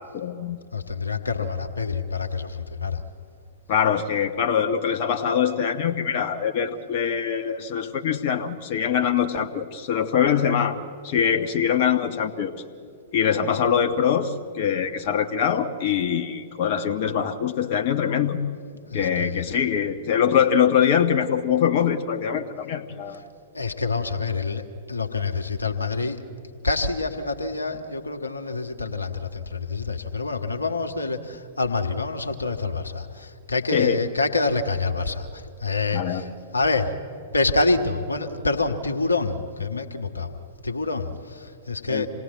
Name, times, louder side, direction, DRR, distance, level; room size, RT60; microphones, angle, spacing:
voice 1, 0.1-0.6 3.7-10.8 11.0-12.6 13.1-18.4 18.9-23.2 33.7-34.0 35.9-36.3 41.9-42.1, left 8 dB, 45° left, 5 dB, 1.2 m, -23 dB
voice 2, 0.7-3.0 18.9-19.4 23.5-26.2 26.6-36.2 36.5-36.9 37.3-40.4 40.6-42.1, left 3 dB, 85° left, 6 dB, 1.5 m, -27 dB
27.0 x 19.0 x 8.4 m, 2.4 s
figure-of-eight pair, 105°, 0 cm